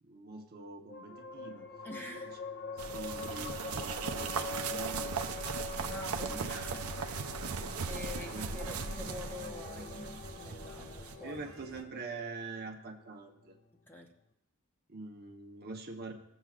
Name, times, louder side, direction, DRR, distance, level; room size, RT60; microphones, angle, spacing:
voice 1, 0.0-1.7 2.9-5.4 6.2-6.4 8.3-8.6 11.2-13.6 14.9-16.1, right 3 dB, 50° right, 2 dB, 1.1 m, -44 dB
sound 1, 0.9-13.7, left 3 dB, 45° left, 0.8 m, -45 dB
voice 2, 1.8-2.4 5.9-7.5 7.9-11.4 13.9-14.1, left 2 dB, 10° left, 1 dB, 0.9 m, -46 dB
sound 2, 2.8-11.2, right 5 dB, 90° right, 0.7 m, -38 dB
sound 3, 5.8-11.8, right 1 dB, 65° right, 1.4 m, -49 dB
17.0 x 7.2 x 2.5 m, 0.80 s
head